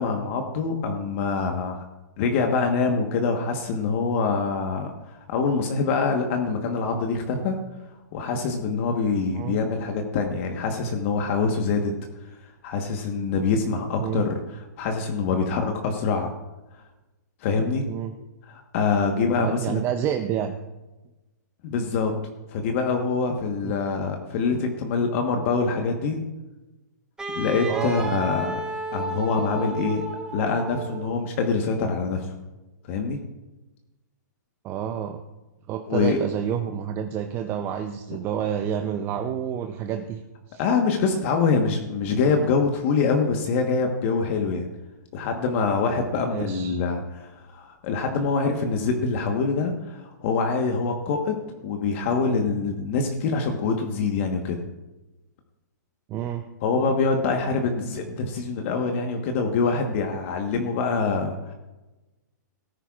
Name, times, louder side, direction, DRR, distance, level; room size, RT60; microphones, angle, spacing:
voice 1, 0.0-1.8 2.2-7.6 8.1-11.9 12.6-16.3 17.4-17.9 18.5-19.8 21.6-22.1 22.5-26.2 27.3-28.5 28.9-30.0 30.3-32.3 32.9-33.2 35.9-36.2 40.6-44.7 45.1-54.6 56.6-61.5, left 4 dB, 40° left, 3 dB, 1.3 m, -25 dB
voice 2, 19.4-20.6 27.7-28.1 34.6-35.2 35.7-40.2 40.5-40.6 46.3-46.8 56.1-56.4, right 9 dB, 25° right, 6 dB, 0.6 m, -29 dB
Wind instrument woodwind instrument, 27.2-31.2, right 1 dB, 5° right, 1.1 m, -32 dB
17.5 x 9.9 x 2.5 m, 1.1 s
hypercardioid pair, 145°, 10 cm